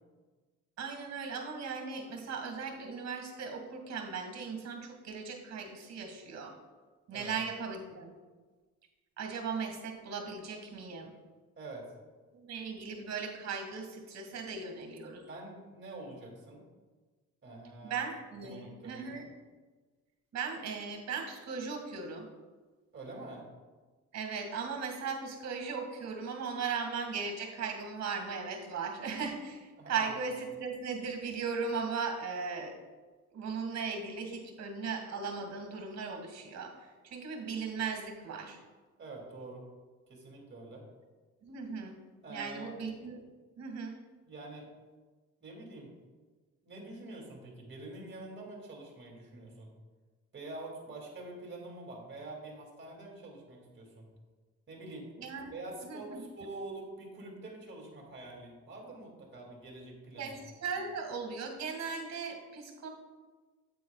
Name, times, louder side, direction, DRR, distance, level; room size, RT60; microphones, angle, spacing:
voice 1, 0.8-6.5 7.1-8.1 9.2-11.1 12.3-15.2 17.8-19.2 20.3-22.3 24.1-32.7 33.3-36.7 37.0-38.6 41.4-42.0 42.3-43.2 43.6-43.9 55.2-55.5 55.8-56.2 60.2-62.9, right 5 dB, 60° right, 4 dB, 2.0 m, -37 dB
voice 2, 11.6-11.9 15.3-16.6 17.4-18.1 18.4-19.2 22.9-23.4 29.8-30.1 39.0-39.6 40.1-40.8 42.2-42.7 44.2-44.7 45.4-45.9 46.6-49.7 50.3-54.1 54.7-55.1 55.5-60.4, right 2 dB, 40° right, -1 dB, 2.6 m, -46 dB
9.3 x 8.4 x 2.4 m, 1.3 s
cardioid pair, 90°, 30 cm